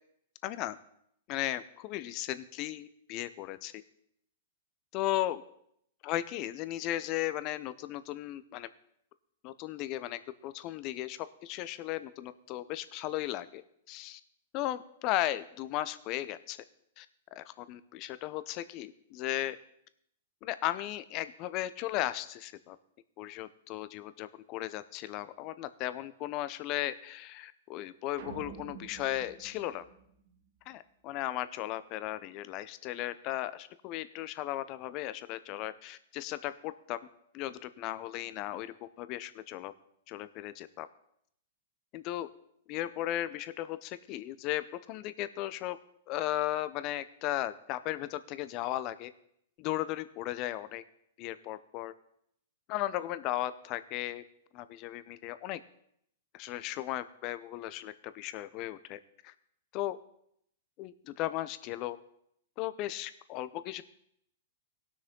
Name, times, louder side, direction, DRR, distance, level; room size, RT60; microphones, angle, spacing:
voice 1, 0.4-0.8 1.3-3.8 4.9-5.4 6.0-8.7 9.4-13.6 13.9-14.2 14.5-16.6 17.0-17.1 17.3-19.6 20.4-22.8 23.2-29.8 30.7-37.0 37.3-39.7 40.1-40.9 41.9-42.3 42.7-45.8 46.1-49.1 49.6-50.8 51.2-51.9 52.7-54.2 54.5-55.6 56.3-59.0 59.2-59.3 59.7-60.0 60.8-62.0 62.6-63.8, left 14 dB, 40° left, 14 dB, 0.7 m, -36 dB
sound 1, 28.2-30.6, right 6 dB, 60° right, 1.5 m, -48 dB
17.5 x 6.2 x 3.8 m, 0.72 s
hypercardioid pair, 125°, 0 cm